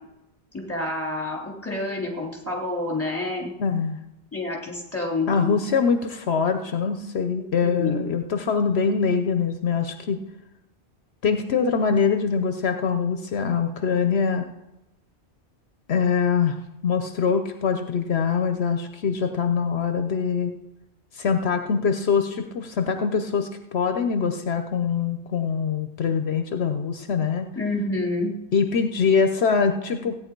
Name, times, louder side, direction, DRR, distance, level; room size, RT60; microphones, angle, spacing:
voice 1, 0.5-3.5 4.3-5.6 7.3-8.0 27.5-28.3, left 2 dB, 10° left, -2 dB, 3.0 m, -28 dB
voice 2, 3.6-4.0 5.3-10.2 11.2-14.5 15.9-16.6 16.8-20.5 21.1-27.5 28.5-30.2, left 6 dB, 75° left, 7 dB, 1.0 m, -23 dB
16.5 x 9.4 x 4.5 m, 0.93 s
omnidirectional pair, 1.1 m